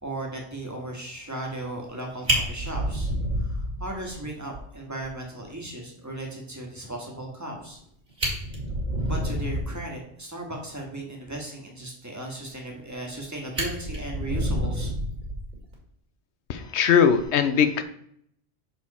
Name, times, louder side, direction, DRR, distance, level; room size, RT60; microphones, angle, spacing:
voice 1, 0.0-7.8 9.0-14.9, right 1 dB, 15° right, 0 dB, 1.5 m, -36 dB
Fire, 1.8-1.9 2.3-4.2 4.5-4.6 5.0-5.1 5.5-5.6 7.7-7.8 8.1-9.8 12.7-13.2 13.5-15.7 17.0-17.3, equal, 45° right, 2.2 m, -28 dB
voice 2, 16.5-17.8, left 7 dB, 85° left, 10 dB, 0.9 m, -20 dB
6.3 x 4.8 x 4.2 m, 0.69 s
omnidirectional pair, 1.1 m